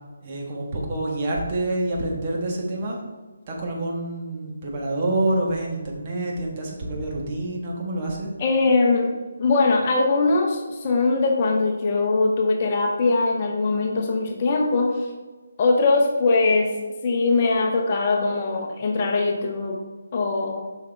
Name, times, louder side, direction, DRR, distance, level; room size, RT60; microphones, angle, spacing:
voice 1, 0.2-3.0 3.5-8.3, right 2 dB, 30° right, -2 dB, 1.5 m, -27 dB
voice 2, 8.4-15.1 15.6-16.7 17.0-19.8 20.1-20.6, left 3 dB, 35° left, 1 dB, 0.9 m, -21 dB
6.8 x 5.8 x 3.4 m, 1.3 s
figure-of-eight pair, 150°, 0 cm